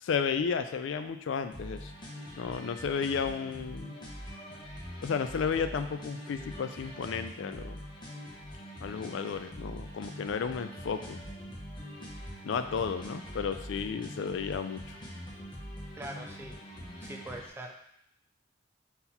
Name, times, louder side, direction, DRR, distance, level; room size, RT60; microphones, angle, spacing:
voice 1, 0.0-1.9 2.4-3.9 5.0-7.8 8.8-11.2 12.4-15.0, left 6 dB, 80° left, 9 dB, 0.3 m, -33 dB
sound 1, 1.5-17.5, equal, 25° left, 0.8 m, -43 dB
voice 2, 15.9-16.6 17.0-17.8, right 1 dB, 15° right, 2 dB, 0.3 m, -42 dB
4.0 x 2.9 x 4.1 m, 0.75 s
head